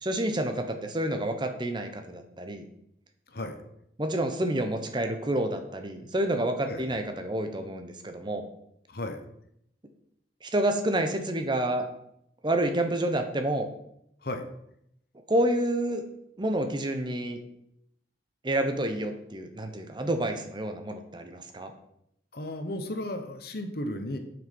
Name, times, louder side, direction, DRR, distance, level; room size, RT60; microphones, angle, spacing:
voice 1, 0.0-2.7 4.0-8.4 10.4-11.9 12.4-13.7 15.3-16.0 16.4-17.4 18.4-21.7, right 1 dB, 25° right, 6 dB, 0.9 m, -29 dB
voice 2, 3.3-3.6 6.7-6.9 8.9-9.2 14.2-14.4 22.3-24.2, left 1 dB, 60° left, 6 dB, 1.1 m, -34 dB
8.0 x 6.2 x 5.4 m, 0.76 s
head